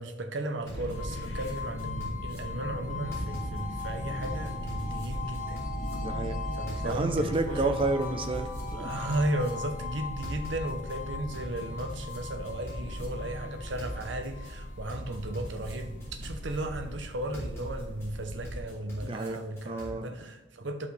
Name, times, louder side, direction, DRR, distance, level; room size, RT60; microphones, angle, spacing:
voice 1, 0.0-5.6 6.6-7.8 8.7-20.9, right 1 dB, 80° right, 6 dB, 0.9 m, -35 dB
sound 1, 0.6-18.6, equal, 80° left, 1.5 m, -39 dB
sound 2, 0.7-2.4 3.1-3.9 4.2-5.9 6.7-7.4 7.8-9.5 10.2-11.0 11.3-13.1 13.8-14.5 14.9-16.6 17.3-18.1 18.4-19.9, equal, 15° left, 2.9 m, -44 dB
sound 3, 0.9-15.9, left 5 dB, 45° left, 0.8 m, -41 dB
voice 2, 6.0-6.4 6.8-8.9 19.0-19.4 19.6-20.1, right 2 dB, 30° right, 7 dB, 0.7 m, -30 dB
11.5 x 5.4 x 3.3 m, 1.2 s
head